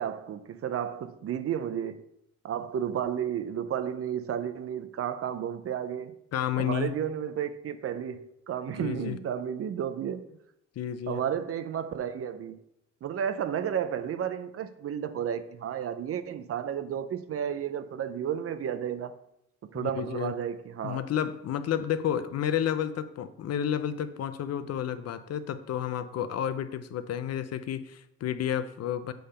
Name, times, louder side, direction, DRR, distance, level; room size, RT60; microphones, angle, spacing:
voice 1, 0.0-2.0 2.4-6.1 6.6-10.4 11.1-12.6 13.0-19.2 19.6-21.0, right 9 dB, 50° right, 0.5 m, -32 dB
voice 2, 6.3-6.9 8.8-9.2 10.8-11.2 19.7-20.3 20.8-29.1, left 9 dB, 55° left, 0.6 m, -31 dB
7.7 x 3.4 x 5.5 m
cardioid pair, 90°, 30 cm